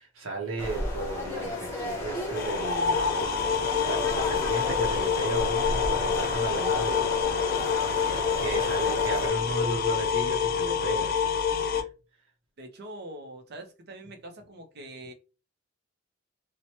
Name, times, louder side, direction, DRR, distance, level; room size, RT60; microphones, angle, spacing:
voice 1, 0.0-3.3 3.6-7.8 8.4-11.9, right 3 dB, 90° right, 0.6 m, -35 dB
sound 1, 0.6-9.3, left 1 dB, 10° left, 0.9 m, -33 dB
sound 2, 2.3-11.8, left 7 dB, 50° left, 0.4 m, -27 dB
voice 2, 7.9-8.7 12.6-15.1, right 1 dB, 55° right, 0.6 m, -44 dB
2.9 x 2.1 x 2.8 m
head